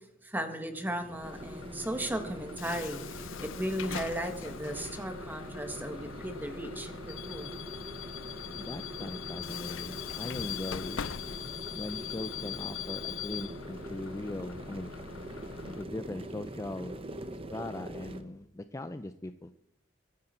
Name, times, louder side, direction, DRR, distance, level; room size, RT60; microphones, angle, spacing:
voice 1, 0.2-7.5, right 1 dB, 10° right, 6 dB, 1.6 m, -36 dB
sound 1, 0.8-18.2, right 1 dB, 30° right, 1.0 m, -44 dB
Bus / Alarm, 1.2-15.8, left 9 dB, 80° left, 0.5 m, -41 dB
voice 2, 8.6-11.0 11.7-14.9 15.7-17.0 17.5-19.6, left 1 dB, 15° left, 10 dB, 0.4 m, -40 dB
22.5 x 9.8 x 4.4 m, 0.78 s
head